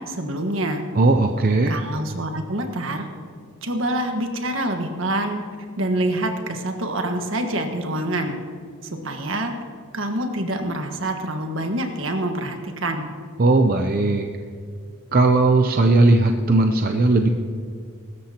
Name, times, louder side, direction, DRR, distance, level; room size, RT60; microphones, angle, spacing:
voice 1, 0.0-0.8 1.7-3.1 3.6-5.4 5.8-8.4 8.8-9.5 9.9-13.1, right 1 dB, 65° right, 4 dB, 1.5 m, -26 dB
voice 2, 1.0-1.7 13.4-14.3 15.1-17.3, right 2 dB, 40° right, 5 dB, 0.6 m, -17 dB
22.5 x 13.0 x 2.9 m, 2.2 s
head